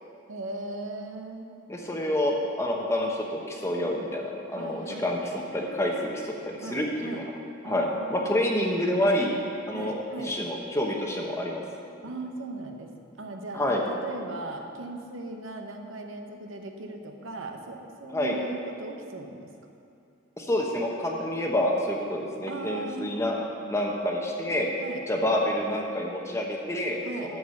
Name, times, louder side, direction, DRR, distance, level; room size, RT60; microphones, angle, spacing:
voice 1, 0.3-1.6 4.5-5.1 6.6-7.2 7.6-8.9 9.7-10.3 12.0-12.9 13.2-19.5 22.5-23.2 24.8-25.0 27.0-27.4, right 2 dB, 75° right, 4 dB, 0.9 m, -38 dB
voice 2, 1.7-7.2 7.6-9.4 9.7-11.6 13.5-13.8 18.1-18.4 20.4-23.4 23.7-24.7 25.1-27.4, left 1 dB, 15° left, 0 dB, 0.9 m, -28 dB
14.0 x 4.8 x 6.5 m, 2.6 s
head